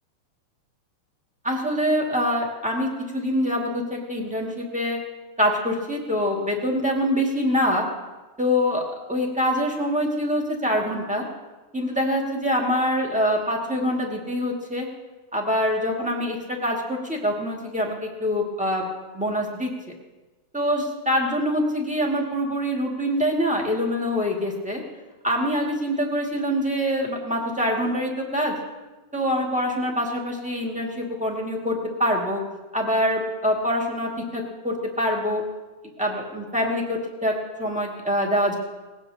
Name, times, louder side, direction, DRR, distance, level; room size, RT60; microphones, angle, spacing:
voice 1, 1.4-2.9 3.1-5.0 5.4-7.8 8.4-8.8 9.1-11.2 11.7-14.9 15.3-18.9 19.1-19.7 20.5-24.8 25.2-28.5 29.1-32.4 32.7-35.4 36.0-37.3 37.6-38.6, equal, 5° right, -1 dB, 1.2 m, -25 dB
20.0 x 17.0 x 2.8 m, 1.2 s
omnidirectional pair, 3.7 m